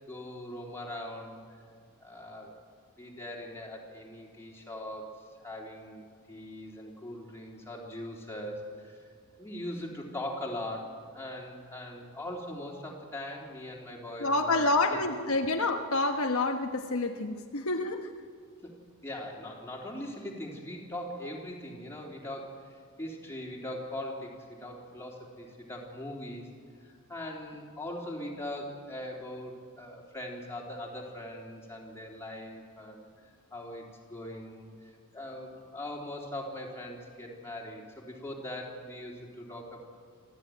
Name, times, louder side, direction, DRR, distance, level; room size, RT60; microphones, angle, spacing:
voice 1, 0.1-1.4 2.0-2.6 3.0-9.1 9.3-15.0 18.6-26.5 26.8-34.7 35.1-39.8, left 1 dB, 10° left, -2 dB, 3.6 m, -41 dB
voice 2, 14.2-18.1, left 2 dB, 65° left, 4 dB, 1.3 m, -28 dB
26.5 x 14.0 x 9.4 m, 2.1 s
head